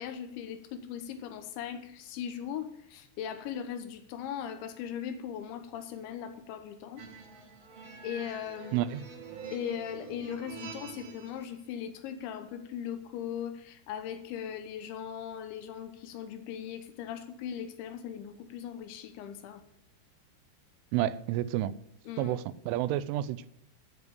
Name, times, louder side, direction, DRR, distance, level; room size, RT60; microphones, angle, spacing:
voice 1, 0.0-7.0 8.0-8.8 9.5-19.6 22.1-22.4, left 9 dB, 75° left, 3.2 m, -39 dB
sound 1, 7.0-11.5, right 5 dB, 50° right, 2.1 m, -46 dB
voice 2, 8.7-9.0 20.9-21.7 22.2-23.5, right 13 dB, 85° right, 3.1 m, -30 dB
12.5 x 7.4 x 8.2 m
omnidirectional pair, 5.5 m